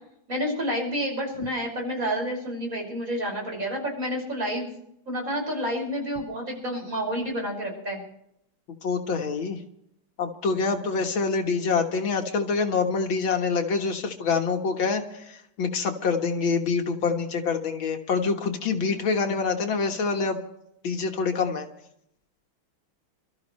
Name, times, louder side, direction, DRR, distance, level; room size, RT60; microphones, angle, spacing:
voice 1, 0.3-4.7 5.1-8.0 18.9-19.0, equal, 40° right, 0 dB, 6.1 m, -29 dB
voice 2, 8.8-9.6 10.2-20.4 20.8-21.7, left 5 dB, 75° left, 4 dB, 2.2 m, -26 dB
27.5 x 13.5 x 3.2 m, 0.75 s
omnidirectional pair, 2.2 m